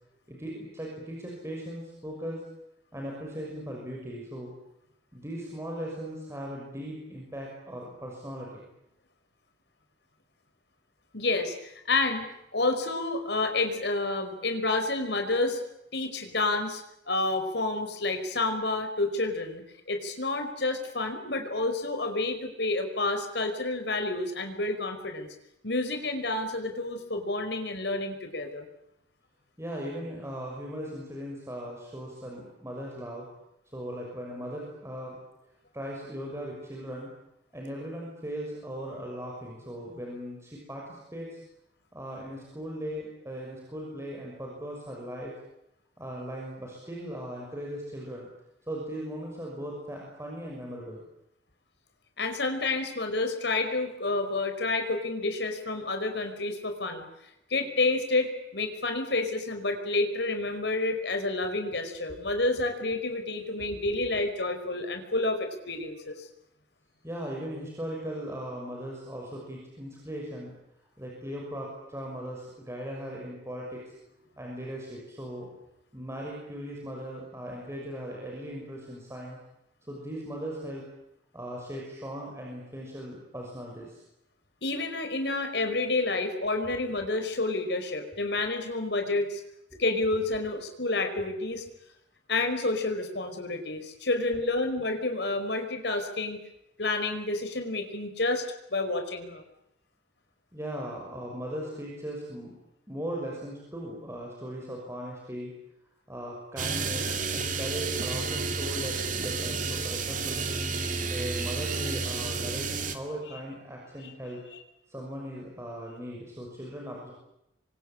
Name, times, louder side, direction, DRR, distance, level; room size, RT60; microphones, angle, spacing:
voice 1, 0.3-2.4 2.9-4.5 5.1-8.7 29.6-33.3 33.7-35.2 35.7-37.1 37.5-41.4 41.9-45.3 46.0-48.3 48.7-51.0 63.7-64.0 67.0-70.5 71.0-75.5 75.9-79.4 79.9-80.8 81.3-84.0 89.7-89.8 100.5-102.5 102.9-105.5 106.1-110.4 111.1-114.4 114.9-117.1, equal, 15° right, -2 dB, 6.3 m, -38 dB
voice 2, 11.1-12.3 12.5-15.6 15.9-25.3 25.6-28.7 52.2-57.0 57.5-66.3 84.6-89.4 89.8-91.6 92.3-96.4 96.8-98.4 98.7-99.4 114.0-114.1 114.5-114.6, left 2 dB, 65° left, 6 dB, 5.1 m, -29 dB
sound 1, 106.6-113.0, right 4 dB, 45° right, 2.6 m, -31 dB
27.5 x 24.5 x 8.9 m, 0.83 s
head